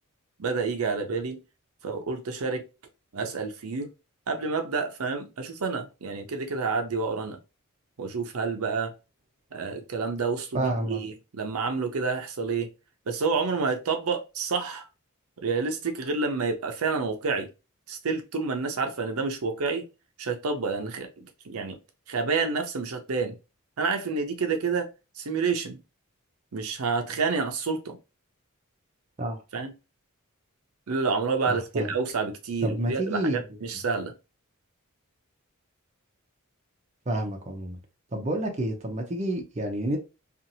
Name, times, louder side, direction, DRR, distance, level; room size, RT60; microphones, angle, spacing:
voice 1, 0.4-1.4 1.8-2.6 3.1-3.9 4.3-7.4 8.0-8.9 9.5-12.7 13.1-14.9 15.4-17.5 17.9-19.8 20.2-21.8 22.1-23.3 23.8-24.9 25.2-25.8 26.5-28.0 29.5-29.7 30.9-34.1, right 4 dB, 80° right, 0.6 m, -29 dB
voice 2, 10.5-11.0 29.2-29.4 31.5-31.9 32.6-33.4 37.1-37.8 38.1-40.0, right 1 dB, 30° right, 0.6 m, -29 dB
2.7 x 2.5 x 2.7 m
head